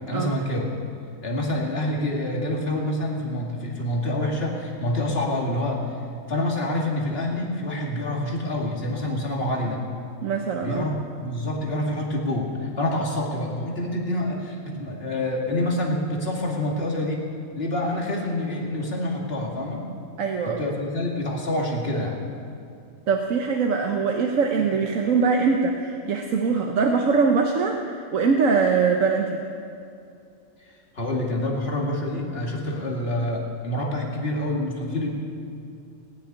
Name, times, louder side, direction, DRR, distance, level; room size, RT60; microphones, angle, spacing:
voice 1, 0.1-0.7 1.2-5.9 6.3-9.8 10.6-17.2 17.6-19.9 20.4-22.2 30.9-35.1, left 1 dB, 45° left, -2 dB, 2.5 m, -27 dB
voice 2, 10.2-10.9 20.2-20.6 23.1-29.4, right 5 dB, 75° right, 2 dB, 1.3 m, -22 dB
20.0 x 6.9 x 9.5 m, 2.6 s
omnidirectional pair, 1.4 m